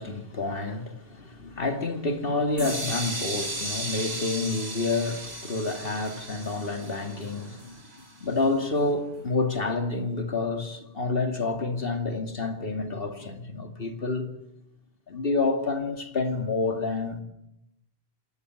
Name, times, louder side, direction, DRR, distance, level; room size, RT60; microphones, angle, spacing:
voice 1, 0.0-14.3 15.1-17.2, left 3 dB, 55° left, 2.5 m, -29 dB
sound 1, 2.6-8.4, right 1 dB, 70° right, 4.4 m, -36 dB
27.0 x 14.0 x 9.7 m
omnidirectional pair, 1.1 m